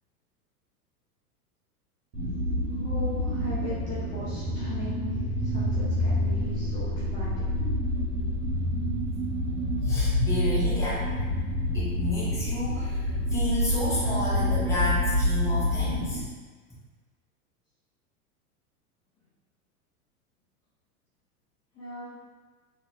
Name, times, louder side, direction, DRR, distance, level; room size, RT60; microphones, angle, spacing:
sound 1, 2.1-16.2, left 1 dB, 80° right, 1.3 m, -27 dB
voice 1, 2.8-7.5 21.7-22.2, equal, 30° left, -9 dB, 0.9 m, -40 dB
voice 2, 9.8-11.1 11.7-16.3, left 1 dB, 5° left, -9 dB, 1.2 m, -31 dB
3.6 x 3.1 x 2.6 m, 1.4 s
hypercardioid pair, 95°, 47 cm